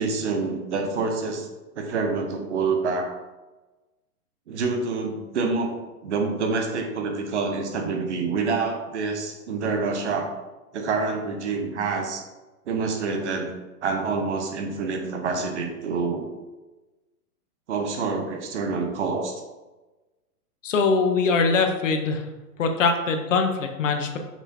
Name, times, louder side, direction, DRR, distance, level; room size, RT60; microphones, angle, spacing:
voice 1, 0.0-1.5 1.7-3.1 4.5-5.8 6.0-10.3 10.7-12.2 12.7-13.5 13.8-16.3 17.7-19.4, right 4 dB, 45° right, 4 dB, 1.1 m, -27 dB
voice 2, 20.6-22.2 22.6-24.2, left 4 dB, 50° left, 6 dB, 0.9 m, -22 dB
5.7 x 4.8 x 4.2 m, 1.1 s
hypercardioid pair, 170°, 47 cm